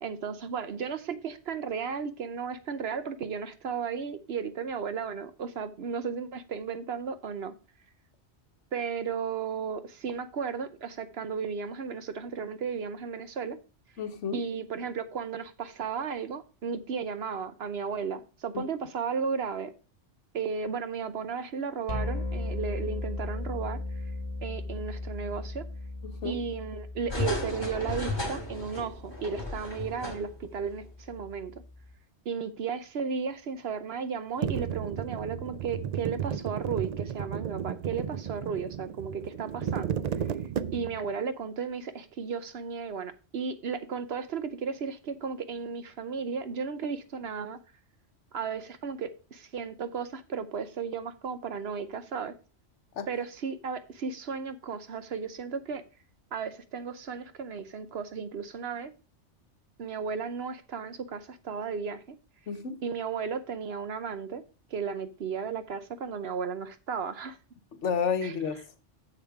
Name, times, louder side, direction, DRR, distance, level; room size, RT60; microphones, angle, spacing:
voice 1, 0.0-7.5 8.7-13.6 14.3-19.7 20.3-23.8 24.4-25.7 26.2-31.6 32.2-40.0 40.7-47.6 48.3-52.3 53.1-55.8 56.3-58.9 59.8-62.2 62.8-64.4 64.7-67.4 68.2-68.3, right 6 dB, 60° right, 1.0 m, -34 dB
voice 2, 14.0-14.4 26.0-26.4 53.0-53.1 62.5-62.8 67.8-68.6, left 6 dB, 75° left, 1.3 m, -30 dB
sound 1, 21.9-31.9, left 2 dB, 55° left, 1.9 m, -38 dB
sound 2, 27.1-30.5 30.8-30.9, left 1 dB, 20° left, 2.1 m, -34 dB
sound 3, 34.4-41.1, right 8 dB, 75° right, 0.3 m, -33 dB
7.2 x 6.9 x 4.7 m
omnidirectional pair, 1.2 m